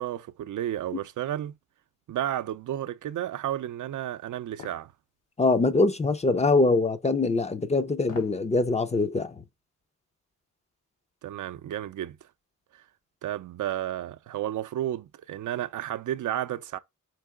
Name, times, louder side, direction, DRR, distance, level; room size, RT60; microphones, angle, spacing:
voice 1, 0.0-1.5 2.1-4.9 11.2-12.3 12.7-12.8 13.2-16.8, right 12 dB, 75° right, 0.5 m, -32 dB
sound 1, 4.6-4.8 6.4-6.6 8.0-8.4 8.8-8.9, left 5 dB, 85° left, 1.2 m, -43 dB
voice 2, 5.4-9.3, left 3 dB, 20° left, 0.4 m, -23 dB
4.7 x 2.9 x 3.5 m
wide cardioid pair, 135°, 31 cm